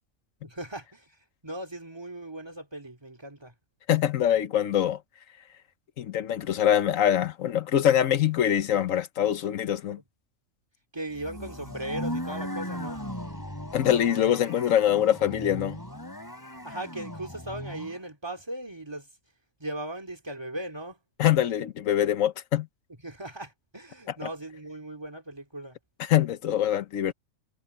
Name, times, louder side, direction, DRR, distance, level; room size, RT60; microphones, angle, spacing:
voice 1, 0.4-3.5 10.9-13.0 16.6-19.1 19.6-21.0 23.0-25.8, right 1 dB, 20° right, 3.0 m, -38 dB
voice 2, 3.9-5.0 6.0-10.0 13.7-15.8 21.2-22.7 26.0-27.1, left 10 dB, 85° left, 1.3 m, -24 dB
sound 1, 11.1-18.0, equal, 15° left, 3.3 m, -37 dB
omnidirectional pair, 1.3 m